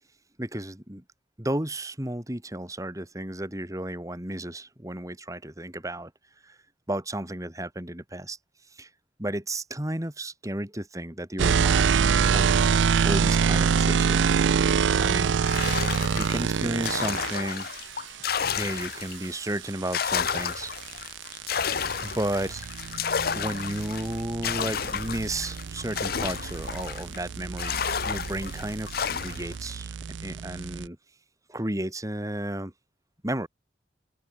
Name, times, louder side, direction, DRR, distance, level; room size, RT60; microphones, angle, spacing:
voice 1, 0.4-1.0 1.4-6.1 6.4-6.6 6.9-8.4 8.7-8.9 9.2-12.5 13.0-14.4 15.0-15.6 16.1-17.7 18.6-20.7 22.0-22.7 23.3-31.0 31.5-32.7 33.2-33.5, right 1 dB, 20° right, 2.6 m, -33 dB
sound 1, 11.4-17.4 19.9-30.9, right 6 dB, 90° right, 0.5 m, -26 dB
sound 2, 15.4-19.3 19.7-27.2 27.6-29.5, left 7 dB, 55° left, 0.7 m, -31 dB
open air
head